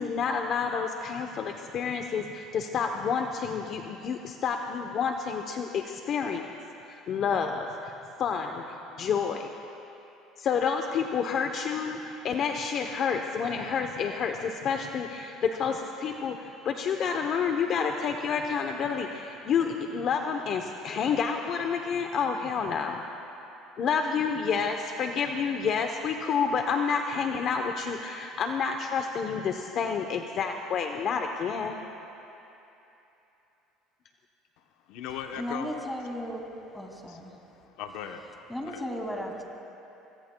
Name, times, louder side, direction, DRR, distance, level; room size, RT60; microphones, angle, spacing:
voice 1, 0.0-6.5 6.9-7.9 8.2-8.6 9.0-9.5 10.4-23.0 23.8-31.8, left 6 dB, 50° left, 4 dB, 0.8 m, -29 dB
voice 2, 34.6-35.8 37.1-38.3 38.6-38.8, left 8 dB, 75° left, 5 dB, 0.9 m, -40 dB
voice 3, 35.4-37.3 38.5-39.4, equal, 5° left, 0 dB, 2.4 m, -35 dB
25.0 x 23.5 x 2.3 m, 3.0 s
cardioid pair, 115°, 0 cm